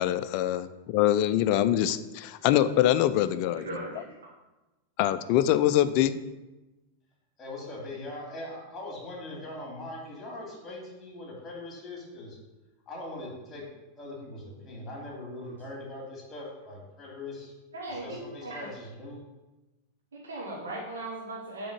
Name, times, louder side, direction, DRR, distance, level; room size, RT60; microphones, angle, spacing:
voice 1, 0.0-3.7 5.0-6.2, left 12 dB, 45° left, 13 dB, 0.4 m, -24 dB
voice 2, 3.5-4.3 14.6-14.7 17.7-18.7 20.1-21.7, right 2 dB, 70° right, -3 dB, 1.2 m, -38 dB
voice 3, 7.4-12.4 12.9-13.6 14.0-17.5 17.9-19.2, left 2 dB, 20° left, -2 dB, 2.5 m, -41 dB
6.2 x 3.6 x 6.1 m, 1.1 s
figure-of-eight pair, 90°, 0 cm